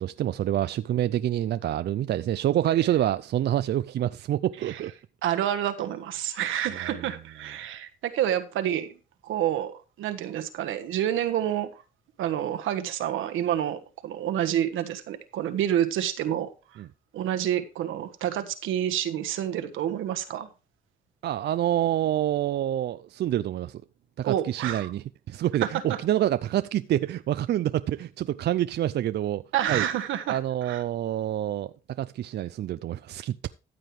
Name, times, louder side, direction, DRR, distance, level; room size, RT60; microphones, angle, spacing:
voice 1, 0.0-4.9 6.8-7.0 16.8-16.9 21.2-23.8 24.2-29.8 30.3-33.5, right 12 dB, 55° right, 0.4 m, -27 dB
voice 2, 5.2-9.0 9.2-11.7 12.2-16.8 17.1-20.5 24.2-24.9 25.7-26.0 29.5-30.8, right 11 dB, 85° right, 1.3 m, -28 dB
14.0 x 7.7 x 3.2 m
cardioid pair, 90°, 20 cm